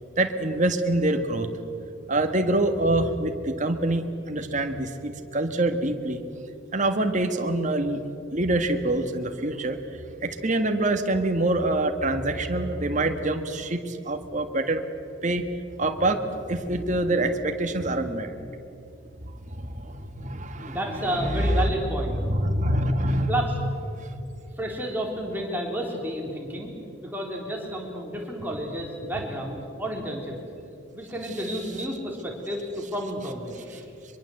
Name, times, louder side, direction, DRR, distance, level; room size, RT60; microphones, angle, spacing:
voice 1, 0.2-1.5 2.1-6.2 6.7-8.0 8.3-9.8 10.2-14.8 15.2-15.5 15.8-18.6 19.3-21.8 22.2-23.3 24.0-24.2, right 1 dB, 35° right, 6 dB, 1.7 m, -25 dB
voice 2, 20.7-22.2 23.3-23.5 24.6-26.7 27.0-30.4 30.9-33.9, equal, 10° right, -1 dB, 3.7 m, -31 dB
24.0 x 23.0 x 7.9 m, 2.7 s
head